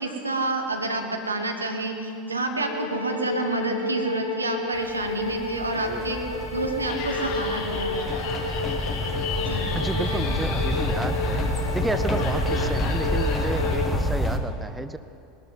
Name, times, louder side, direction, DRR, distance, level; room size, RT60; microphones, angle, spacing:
voice 1, 0.0-6.2 6.5-8.1 9.4-9.7 10.0-10.4, right 2 dB, 85° right, 4 dB, 1.3 m, -29 dB
sound 1, 2.6-13.9, left 2 dB, 85° left, 2.2 m, -32 dB
sound 2, 4.8-14.4, left 1 dB, 20° left, 1.4 m, -28 dB
Laughter, 6.8-13.8, left 5 dB, 40° left, 4.2 m, -36 dB
voice 2, 9.7-11.4 11.7-15.0, right 2 dB, 10° right, 12 dB, 0.5 m, -31 dB
20.5 x 12.5 x 4.1 m, 2.6 s
figure-of-eight pair, 75°, 0 cm